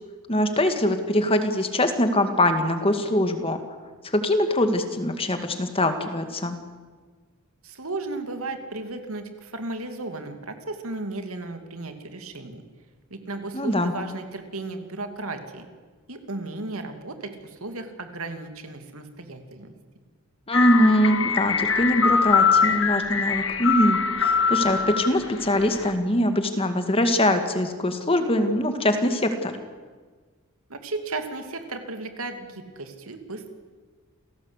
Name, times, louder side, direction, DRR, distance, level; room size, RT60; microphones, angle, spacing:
voice 1, 0.3-3.6 4.0-6.6 13.5-13.9 20.5-29.6, left 1 dB, 25° left, 7 dB, 2.0 m, -23 dB
voice 2, 7.6-12.6 13.1-15.7 16.1-19.7 30.7-33.5, right 2 dB, 75° right, 6 dB, 2.8 m, -35 dB
sound 1, 20.5-25.9, left 6 dB, 60° left, 1.7 m, -23 dB
28.0 x 17.5 x 8.2 m, 1.4 s
head